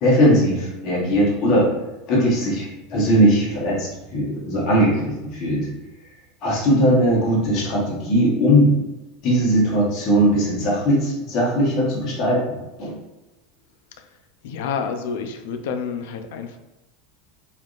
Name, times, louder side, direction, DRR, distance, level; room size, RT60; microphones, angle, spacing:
voice 1, 0.0-1.7 2.1-5.7 6.4-8.7 9.2-12.9, equal, 35° left, -6 dB, 0.9 m, -19 dB
voice 2, 14.4-16.6, left 6 dB, 65° left, 7 dB, 0.3 m, -29 dB
3.4 x 2.4 x 2.4 m, 1.0 s
supercardioid pair, 175°, 0 cm